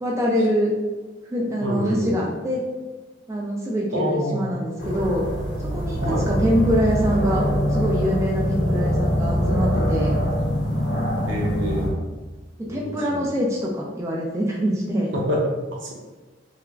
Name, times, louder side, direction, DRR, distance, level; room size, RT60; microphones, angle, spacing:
voice 1, 0.0-0.7 1.3-2.7 3.3-5.2 5.7-10.2 12.6-15.1, equal, 15° right, -3 dB, 0.3 m, -24 dB
voice 2, 1.6-2.2 3.9-4.5 5.9-6.3 11.3-11.9 12.6-13.3 15.1-15.4 15.8-15.9, equal, 80° right, -1 dB, 0.6 m, -26 dB
sound 1, 4.8-11.9, equal, 80° left, 0.6 m, -23 dB
2.9 x 2.4 x 2.3 m, 1.2 s
head